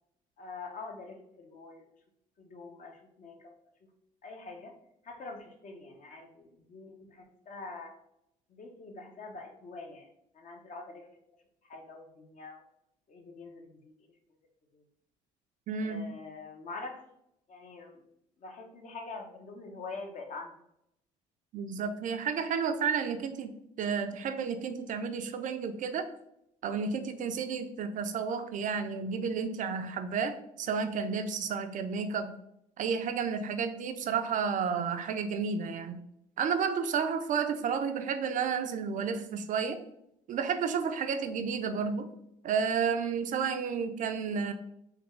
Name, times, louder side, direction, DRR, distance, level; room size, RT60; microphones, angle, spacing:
voice 1, 0.4-1.8 2.4-3.5 4.2-4.7 5.0-7.9 8.5-10.1 10.3-11.0 11.7-12.6 13.1-13.9 14.7-14.8 15.8-17.0 17.5-18.0 18.4-20.5, left 3 dB, 45° left, 3 dB, 0.8 m, -45 dB
voice 2, 15.7-16.1 21.5-23.5 23.8-26.0 26.6-32.3 32.8-36.0 36.4-39.8 40.3-42.1 42.4-44.5, right 6 dB, 50° right, 8 dB, 0.4 m, -31 dB
3.4 x 2.3 x 3.1 m, 0.78 s
hypercardioid pair, 60°, 17 cm